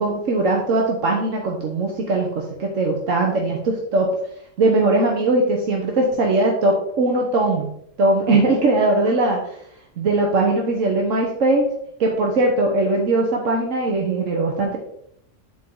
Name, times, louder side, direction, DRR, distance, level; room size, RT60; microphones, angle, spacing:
voice 1, 0.0-4.1 4.6-7.7 8.0-9.4 10.0-11.7 12.0-14.8, right 2 dB, 80° right, 0 dB, 1.4 m, -20 dB
9.1 x 4.5 x 3.8 m, 0.71 s
omnidirectional pair, 1.3 m